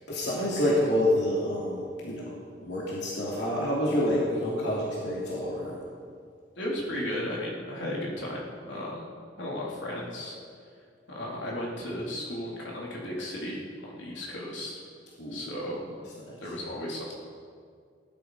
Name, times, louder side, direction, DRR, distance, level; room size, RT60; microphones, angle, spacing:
voice 1, 0.0-2.2 2.6-5.8 15.2-15.4 16.3-16.5, left 1 dB, 65° left, -6 dB, 3.0 m, -28 dB
voice 2, 6.6-9.1 9.4-10.4 11.1-14.8 15.3-16.0 16.4-17.1, left 1 dB, 85° left, -4 dB, 3.7 m, -35 dB
19.0 x 11.5 x 5.1 m, 2.2 s
head